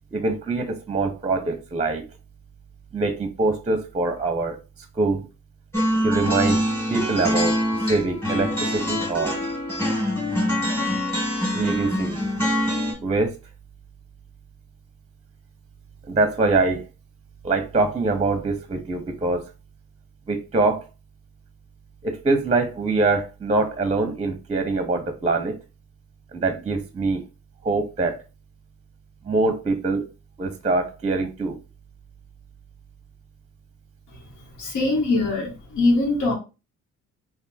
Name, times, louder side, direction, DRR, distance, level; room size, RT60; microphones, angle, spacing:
voice 1, 0.1-2.0 2.9-4.6 4.9-5.3 6.0-6.6 6.9-7.6 7.9-9.4 11.5-12.3 13.0-13.3 16.1-16.9 17.4-19.5 20.3-20.8 22.0-25.6 26.3-27.2 27.6-28.2 29.2-30.0 30.4-31.6, right 3 dB, 20° right, 0.7 m, -24 dB
sound 1, 5.7-12.9, equal, 5° left, 2.2 m, -24 dB
voice 2, 34.6-36.3, left 2 dB, 75° left, 1.5 m, -22 dB
3.3 x 2.6 x 4.1 m
cardioid pair, 90°, 30 cm